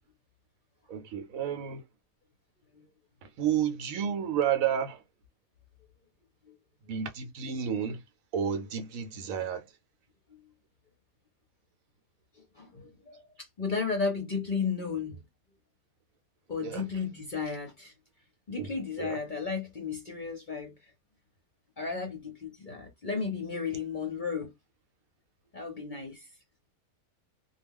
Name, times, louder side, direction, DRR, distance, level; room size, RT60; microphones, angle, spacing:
voice 1, 0.9-1.8 3.2-5.0 6.9-8.0 8.3-9.7 16.6-16.8 18.6-18.7 19.0-19.2, right 8 dB, 75° right, 1.0 m, -31 dB
voice 2, 12.5-15.2 16.5-17.9 18.5-20.9 21.8-24.5 25.5-26.3, left 5 dB, 45° left, 0.6 m, -34 dB
2.3 x 2.2 x 3.4 m
omnidirectional pair, 1.5 m